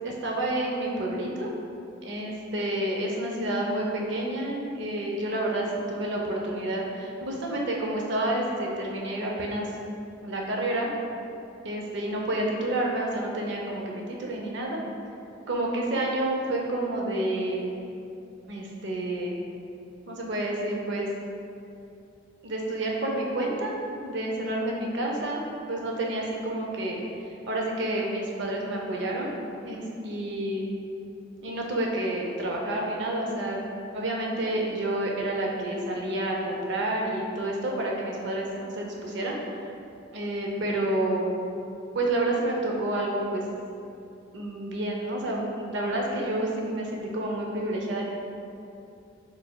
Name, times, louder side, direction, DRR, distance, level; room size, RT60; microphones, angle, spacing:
voice 1, 0.0-1.5 2.0-9.7 10.2-10.9 11.6-14.8 15.5-17.7 18.5-19.4 20.1-21.1 22.4-23.8 24.0-27.0 27.5-29.3 29.6-30.7 31.4-33.6 33.9-39.4 40.1-41.3 41.9-43.5 44.3-48.0, right 1 dB, 60° right, -1 dB, 0.5 m, -29 dB
4.4 x 3.3 x 2.2 m, 2.6 s
head